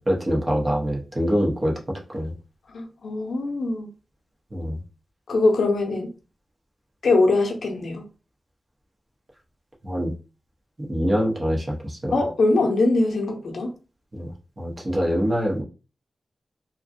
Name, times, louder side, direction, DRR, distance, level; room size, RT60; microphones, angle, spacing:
voice 1, 0.0-2.3 4.5-4.8 9.8-10.1 10.9-12.2 14.1-14.3 14.6-15.6, equal, 30° right, -2 dB, 0.8 m, -24 dB
voice 2, 2.7-3.9 5.3-6.1 7.0-8.0 12.1-13.7, left 2 dB, 75° left, 2 dB, 0.6 m, -22 dB
2.5 x 2.1 x 2.5 m, 0.34 s
wide cardioid pair, 85°, 0 cm